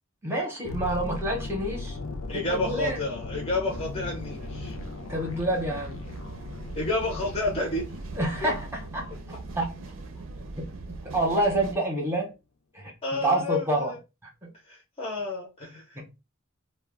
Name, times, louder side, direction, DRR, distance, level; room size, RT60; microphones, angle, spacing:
voice 1, 0.2-2.0 2.3-3.0 5.1-6.0 8.2-9.1 9.5-9.8 10.6-12.3 12.7-14.0 14.4-14.5 15.9-16.2, right 1 dB, 10° right, 0.8 m, -28 dB
sound 1, 0.7-10.6 10.9-11.1, left 3 dB, 85° left, 0.5 m, -39 dB
voice 2, 2.3-4.7 6.7-7.9 8.4-8.5 13.0-14.0 14.7-15.8, left 2 dB, 30° left, 0.8 m, -30 dB
sound 2, 3.7-11.8, right 3 dB, 75° right, 0.5 m, -40 dB
2.2 x 2.2 x 3.3 m
head